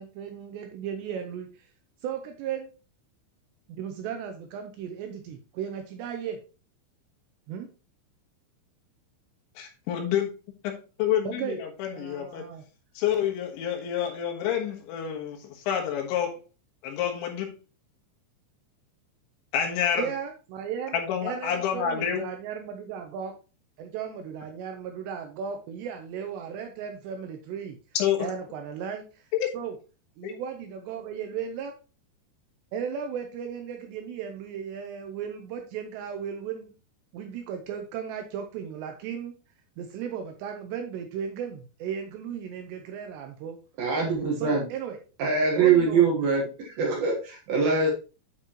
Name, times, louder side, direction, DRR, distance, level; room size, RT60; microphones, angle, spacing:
voice 1, 0.0-1.7 2.0-2.7 3.7-6.4 7.5-7.7 11.3-11.6 11.9-12.6 20.0-20.9 21.2-23.3 23.8-27.8 28.2-29.3 29.5-29.8 30.2-31.7 32.7-36.7 37.1-39.3 39.8-43.6 44.4-45.0 45.6-46.1, right 8 dB, 80° right, 5 dB, 2.6 m, -35 dB
voice 2, 9.6-10.3 10.6-12.5 13.0-16.4 16.8-17.5 19.5-20.1 20.9-22.3 28.0-28.3 29.4-29.5 30.2-30.3, left 9 dB, 75° left, 2 dB, 3.5 m, -28 dB
voice 3, 43.8-44.6 45.2-47.9, right 5 dB, 65° right, -1 dB, 2.7 m, -23 dB
9.9 x 5.3 x 2.9 m, 0.33 s
omnidirectional pair, 5.6 m